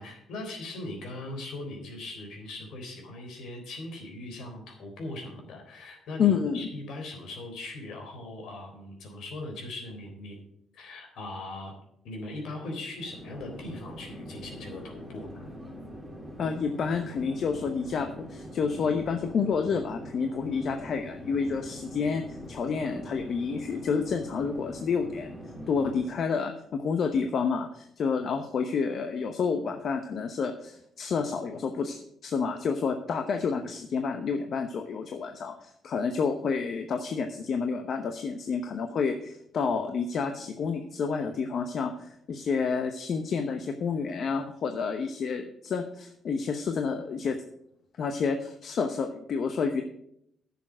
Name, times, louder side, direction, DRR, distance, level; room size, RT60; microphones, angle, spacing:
voice 1, 0.0-10.4 10.7-11.7 12.0-15.5, left 2 dB, 80° left, 3 dB, 3.6 m, -40 dB
voice 2, 6.2-6.7 16.4-22.2 22.5-25.4 25.7-47.4 48.0-49.8, left 5 dB, 60° left, 6 dB, 0.9 m, -29 dB
Chatter / Fixed-wing aircraft airplane, 12.9-26.3, equal, 5° right, 3.3 m, -43 dB
10.5 x 6.9 x 6.2 m, 0.74 s
cardioid pair, 90°, 0 cm